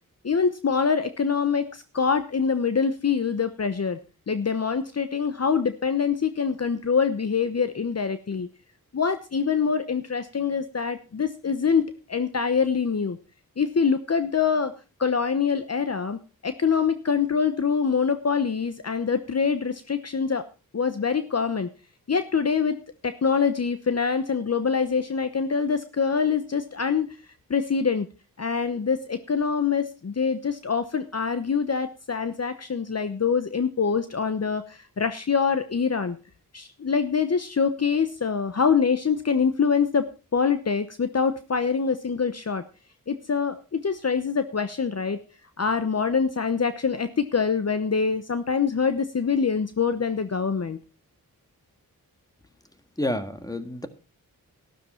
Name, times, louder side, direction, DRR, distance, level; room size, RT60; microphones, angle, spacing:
voice 1, 0.2-4.0 4.3-8.5 8.9-13.2 13.6-14.7 15.0-16.2 16.4-20.4 20.7-21.7 22.1-22.8 23.0-27.1 27.5-28.1 28.4-36.2 36.5-40.0 40.3-42.6 43.1-45.2 45.6-50.8, left 6 dB, 45° left, 10 dB, 0.9 m, -25 dB
voice 2, 53.0-53.9, left 1 dB, 10° left, 9 dB, 1.7 m, -29 dB
12.5 x 12.5 x 4.4 m, 0.33 s
wide cardioid pair, 75°, 36 cm